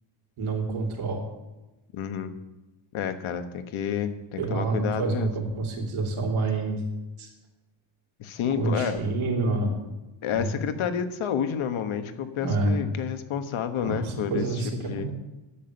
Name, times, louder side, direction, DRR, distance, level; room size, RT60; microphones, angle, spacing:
voice 1, 0.4-1.2 4.4-6.8 7.2-7.3 8.6-9.7 10.3-10.5 12.4-12.8 13.8-15.1, right 3 dB, 85° right, 0 dB, 3.1 m, -27 dB
voice 2, 1.9-2.3 2.9-5.3 8.2-9.0 10.2-14.4 14.8-15.1, left 8 dB, 80° left, 8 dB, 1.2 m, -29 dB
10.0 x 7.0 x 8.7 m, 1.1 s
wide cardioid pair, 170°, 48 cm